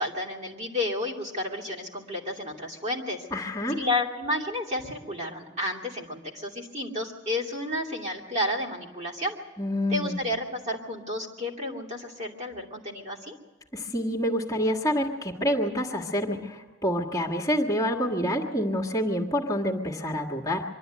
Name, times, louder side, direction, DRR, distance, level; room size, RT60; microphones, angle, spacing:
voice 1, 0.0-3.3 3.7-9.4 9.9-13.4, left 1 dB, 35° right, -2 dB, 2.7 m, -31 dB
voice 2, 3.3-3.8 9.6-10.2 13.7-20.6, equal, 20° left, -2 dB, 1.8 m, -27 dB
24.5 x 12.5 x 9.4 m, 1.3 s
head